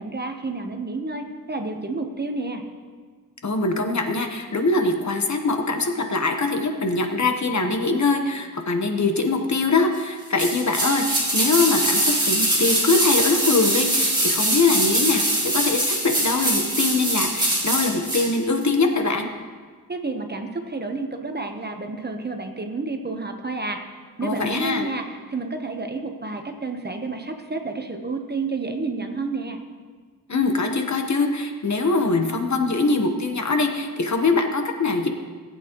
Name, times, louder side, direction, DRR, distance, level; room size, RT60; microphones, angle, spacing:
voice 1, 0.0-2.6 19.9-23.8 24.2-29.6, right 3 dB, 30° right, 5 dB, 0.9 m, -30 dB
voice 2, 3.4-19.3 24.2-24.8 30.3-35.1, left 3 dB, 50° left, 5 dB, 1.1 m, -23 dB
sound 1, 10.4-18.3 18.6-18.7, right 1 dB, 15° right, 3.4 m, -22 dB
18.5 x 8.4 x 3.0 m, 1.5 s
wide cardioid pair, 100°, 35 cm